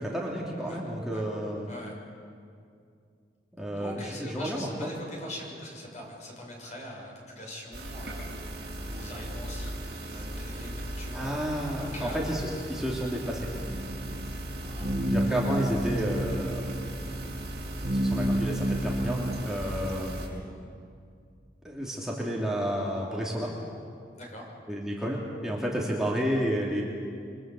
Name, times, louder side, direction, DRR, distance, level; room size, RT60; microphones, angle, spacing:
voice 1, 0.0-1.7 3.6-4.7 11.1-12.4 12.7-13.5 15.1-16.7 17.8-20.3 21.6-23.5 24.7-26.8, equal, 5° right, -4 dB, 3.0 m, -31 dB
voice 2, 1.7-2.0 3.8-11.4 11.8-12.4 14.6-14.9 24.1-24.5, left 1 dB, 40° left, -1 dB, 6.9 m, -42 dB
sound 1, 7.7-20.3, right 1 dB, 60° right, 6.8 m, -38 dB
sound 2, 13.7-19.4, right 1 dB, 40° right, 1.5 m, -30 dB
28.5 x 24.0 x 7.9 m, 2.3 s
head